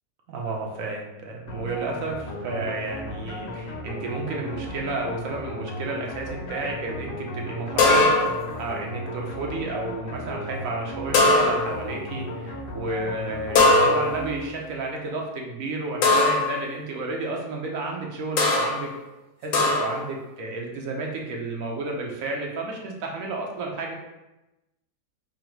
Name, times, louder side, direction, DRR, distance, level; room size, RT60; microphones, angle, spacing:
voice 1, 0.3-8.1 8.6-18.9 19.4-23.9, right 2 dB, 60° right, 0 dB, 1.0 m, -32 dB
sound 1, 1.5-14.8, left 1 dB, 85° left, 1.3 m, -35 dB
sound 2, 7.8-8.5 11.1-11.9 13.5-14.3 16.0-16.6 18.4-18.9 19.5-20.1, left 2 dB, 65° left, 1.0 m, -20 dB
3.9 x 2.0 x 4.4 m, 0.99 s
omnidirectional pair, 1.7 m